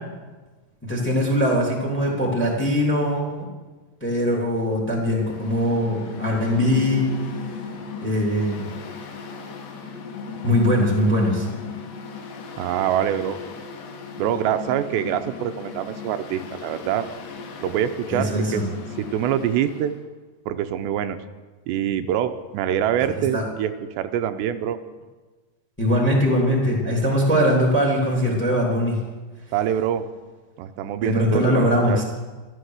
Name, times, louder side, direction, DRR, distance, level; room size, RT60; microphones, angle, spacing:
voice 1, 0.8-3.5 4.0-7.1 8.0-8.7 10.4-11.5 18.1-18.6 23.3-23.4 25.8-29.0 31.0-32.0, equal, 5° left, -1 dB, 2.2 m, -21 dB
Mechanical fan, 5.1-20.0, left 5 dB, 80° left, 3.7 m, -36 dB
voice 2, 12.6-13.4 14.2-17.1 17.6-18.6 19.0-19.9 20.5-21.2 21.7-24.8 29.5-30.0 30.6-32.0, right 10 dB, 90° right, 9 dB, 2.9 m, -25 dB
13.5 x 13.0 x 6.5 m, 1.3 s
omnidirectional pair, 4.9 m